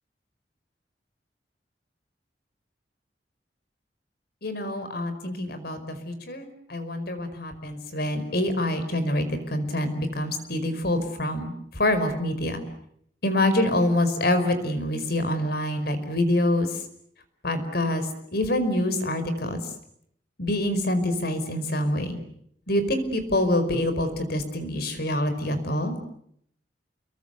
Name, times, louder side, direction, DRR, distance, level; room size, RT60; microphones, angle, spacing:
voice 1, 4.4-12.6 13.2-16.7 17.4-18.1 18.3-19.6 20.4-22.2 22.7-26.0, left 1 dB, 65° left, 10 dB, 5.0 m, -26 dB
29.5 x 23.0 x 8.2 m, 0.70 s
head